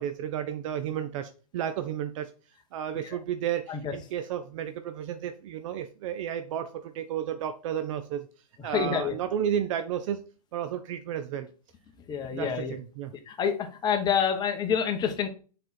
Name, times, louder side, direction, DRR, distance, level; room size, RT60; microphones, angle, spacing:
voice 1, 0.0-2.3 2.7-8.3 8.6-10.2 10.5-11.5 12.3-13.1, right 9 dB, 55° right, 9 dB, 0.7 m, -32 dB
voice 2, 8.6-9.1 12.1-12.8 13.3-15.3, left 7 dB, 20° left, 5 dB, 1.2 m, -28 dB
6.4 x 4.3 x 4.3 m, 0.38 s
hypercardioid pair, 125°, 19 cm